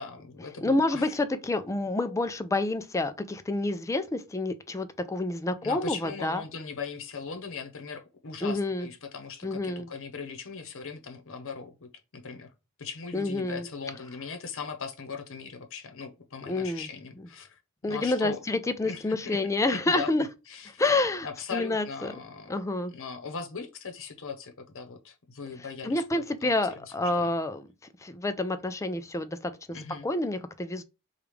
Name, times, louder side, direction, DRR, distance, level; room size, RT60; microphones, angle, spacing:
voice 1, 0.0-1.1 5.6-12.5 12.8-18.4 18.8-19.4 19.7-20.1 20.5-20.8 21.2-22.6 22.9-27.3 29.7-30.1, left 5 dB, 60° left, 0.8 m, -39 dB
voice 2, 0.6-6.4 8.4-8.9 9.4-9.9 13.1-13.7 16.5-16.9 17.8-20.3 20.8-21.3 21.5-22.1 22.5-22.9 25.8-27.7 28.0-29.8 30.0-30.8, left 2 dB, 15° left, 0.3 m, -28 dB
4.9 x 2.4 x 3.1 m
head